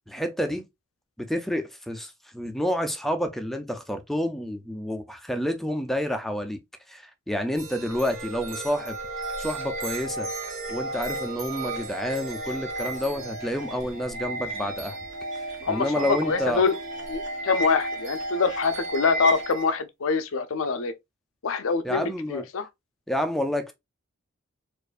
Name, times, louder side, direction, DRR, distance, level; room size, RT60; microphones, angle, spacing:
voice 1, 0.1-0.6 1.2-6.6 6.9-9.0 9.4-10.3 10.7-15.0 15.7-16.6 21.8-22.5 23.1-23.7, equal, ahead, 0.4 m, -29 dB
sound 1, 7.6-19.7, right 2 dB, 65° right, 1.3 m, -33 dB
voice 2, 15.6-16.7 17.1-20.9 21.4-22.7, left 5 dB, 65° left, 0.5 m, -25 dB
4.4 x 2.5 x 2.4 m
head